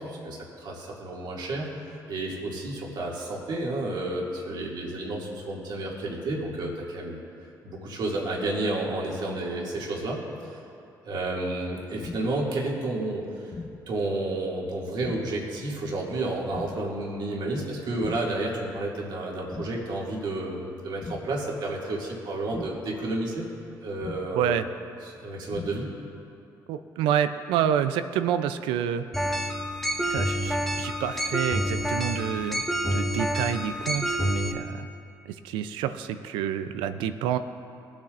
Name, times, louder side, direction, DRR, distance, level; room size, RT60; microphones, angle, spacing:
voice 1, 0.0-1.7 2.1-7.2 7.6-10.2 10.5-10.6 11.0-13.2 13.9-23.4 23.8-24.5 25.2-25.9, right 2 dB, 65° right, -3 dB, 2.3 m, -31 dB
sound 1, 12.0-12.5 13.5-14.0 15.0-15.5 16.5-17.0 18.0-18.5 19.5-20.0 21.0-21.5 22.5-23.0 24.0-24.5 25.5-26.0, left 3 dB, 45° left, 1.2 m, -40 dB
voice 2, 24.3-24.6 26.7-29.0 30.0-32.6 32.9-34.9 35.3-37.4, right 9 dB, 85° right, 11 dB, 0.5 m, -28 dB
sound 2, 29.1-34.5, equal, ahead, 1.2 m, -28 dB
18.5 x 8.6 x 2.5 m, 2.6 s
supercardioid pair, 65°, 8 cm